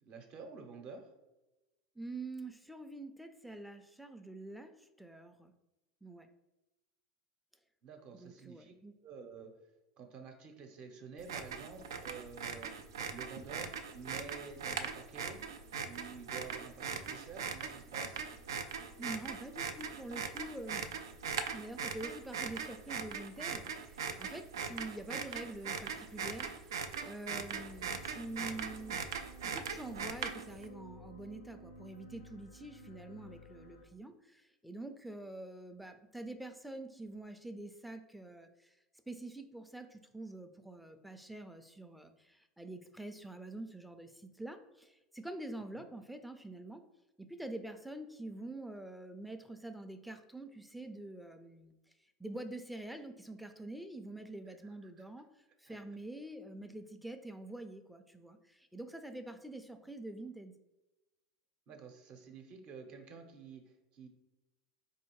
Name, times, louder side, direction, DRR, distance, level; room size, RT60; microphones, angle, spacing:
voice 1, 0.0-1.1 7.8-8.7 9.0-9.5 10.0-12.7 13.1-15.4 15.8-18.3 45.8-45.9 54.6-54.7 55.7-55.8 61.7-64.1, right 5 dB, 50° right, 4 dB, 0.7 m, -50 dB
voice 2, 2.0-5.5 6.0-6.3 8.1-8.9 19.0-20.9 21.5-26.7 27.0-29.0 29.4-38.7 39.1-46.8 47.2-51.7 52.2-55.3 55.6-60.5, right 2 dB, ahead, 8 dB, 0.4 m, -46 dB
sound 1, 11.2-30.6, right 6 dB, 80° right, 0.3 m, -40 dB
sound 2, 15.6-33.9, equal, 85° left, 0.5 m, -58 dB
4.2 x 2.7 x 3.0 m, 1.0 s
hypercardioid pair, 85°, 2 cm